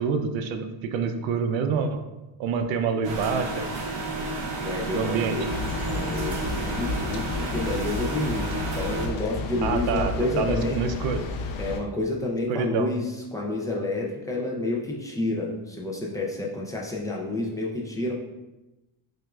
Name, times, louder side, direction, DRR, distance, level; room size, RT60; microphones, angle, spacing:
voice 1, 0.0-2.0 2.4-3.7 4.9-5.4 9.6-11.2 12.5-12.9, right 5 dB, 75° right, 7 dB, 0.6 m, -27 dB
sound 1, 3.0-9.1, right 2 dB, 55° right, 0.9 m, -31 dB
voice 2, 4.6-5.5 5.9-10.8 11.6-18.1, left 2 dB, 10° left, -2 dB, 0.4 m, -29 dB
sound 2, 5.5-11.8, left 3 dB, 70° left, 0.6 m, -32 dB
5.9 x 2.5 x 2.3 m, 1.0 s
cardioid pair, 150°, 46 cm